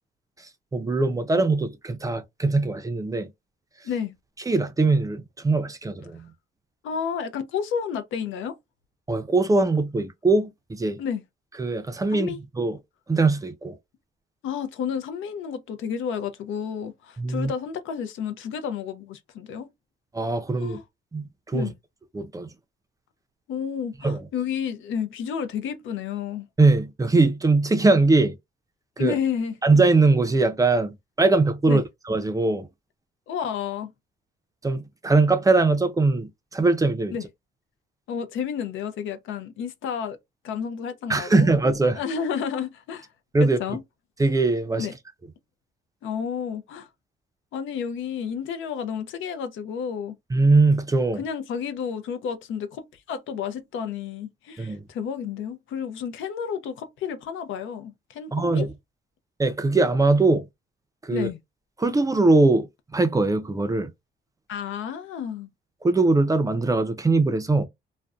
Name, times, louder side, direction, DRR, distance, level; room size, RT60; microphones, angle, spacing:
voice 1, 0.7-3.3 4.5-6.3 9.1-11.0 11.6-12.8 13.1-13.8 17.2-17.5 20.1-20.8 21.1-21.7 22.1-22.5 24.0-24.3 26.6-28.4 29.0-29.1 29.6-32.7 34.6-37.2 41.1-42.0 43.3-43.6 44.2-44.9 50.3-51.2 54.6-54.8 58.3-58.7 59.4-60.4 61.0-61.3 61.8-62.7 62.9-63.9 65.8-67.7, right 3 dB, 15° right, 0.4 m, -21 dB
voice 2, 6.8-8.6 11.0-11.2 12.1-12.4 14.4-19.7 20.6-20.8 21.5-21.7 23.5-26.5 29.0-29.6 31.7-31.8 33.3-33.9 37.1-37.3 38.1-40.2 40.4-41.5 41.9-43.1 43.4-43.8 44.8-44.9 46.0-46.9 47.5-50.1 51.1-58.7 61.1-61.4 64.5-65.5, left 7 dB, 80° left, 0.5 m, -31 dB
2.5 x 2.1 x 2.3 m
cardioid pair, 90°, 20 cm